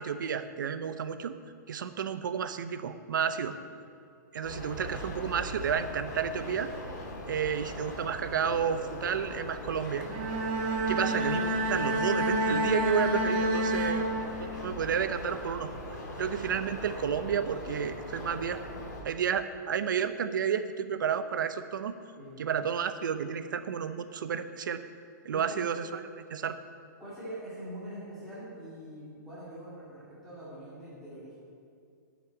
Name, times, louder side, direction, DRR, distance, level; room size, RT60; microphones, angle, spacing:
voice 1, 0.0-1.3 1.7-3.6 4.3-6.7 7.3-10.1 10.9-15.7 16.2-18.6 19.0-22.0 22.4-24.8 25.2-26.0 26.3-26.6, right 7 dB, 75° right, 11 dB, 0.8 m, -31 dB
sound 1, 4.4-19.0, left 1 dB, 55° left, 3.3 m, -40 dB
Bowed string instrument, 10.0-14.7, right 1 dB, 30° right, 1.0 m, -29 dB
voice 2, 27.0-31.4, right 1 dB, ahead, -12 dB, 2.3 m, -43 dB
9.8 x 6.1 x 8.5 m, 2.4 s
hypercardioid pair, 175°, 11 cm